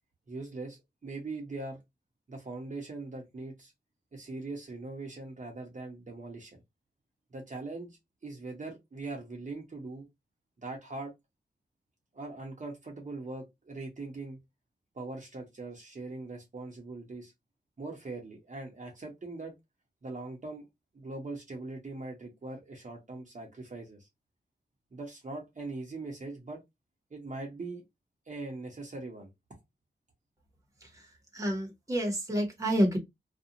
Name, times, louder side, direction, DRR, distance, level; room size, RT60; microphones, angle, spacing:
voice 1, 0.3-1.8 2.3-3.7 4.1-6.6 7.3-8.0 8.2-10.1 10.6-11.1 12.1-14.4 14.9-17.3 17.8-19.5 20.0-20.7 20.9-24.1 24.9-26.6 27.1-27.8 28.3-29.3, right 3 dB, 45° right, 0.8 m, -41 dB
voice 2, 30.8-33.0, equal, 20° right, 0.9 m, -29 dB
2.5 x 2.2 x 2.8 m
wide cardioid pair, 130°, 18 cm